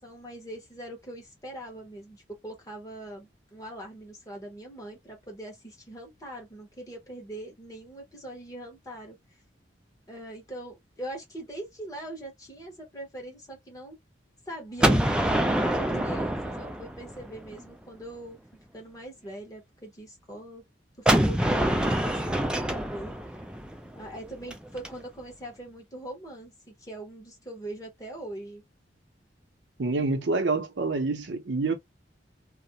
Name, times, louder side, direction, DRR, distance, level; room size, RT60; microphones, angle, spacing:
voice 1, 0.0-9.2 10.1-14.0 14.5-18.4 18.7-20.6 21.0-23.5 23.9-28.6, right 1 dB, 20° left, 0.9 m, -42 dB
Gunshot gunfire, 14.8-17.6 21.1-24.9, right 1 dB, 5° right, 0.3 m, -26 dB
voice 2, 29.8-31.7, right 3 dB, 75° right, 0.6 m, -27 dB
2.4 x 2.0 x 2.7 m
head